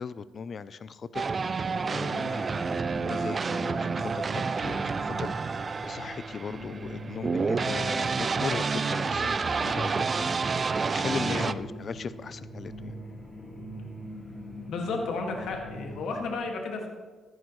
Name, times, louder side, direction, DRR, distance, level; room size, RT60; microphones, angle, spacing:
voice 1, 0.0-13.0, left 6 dB, 45° left, 16 dB, 0.5 m, -38 dB
sound 1, 1.1-11.5, right 4 dB, 35° right, 0.4 m, -29 dB
sound 2, 1.7-16.3, equal, 15° left, 2.5 m, -42 dB
voice 2, 14.7-16.9, left 3 dB, 75° left, 2 dB, 2.0 m, -32 dB
14.5 x 11.0 x 3.2 m, 1.4 s
cardioid pair, 90°, 0 cm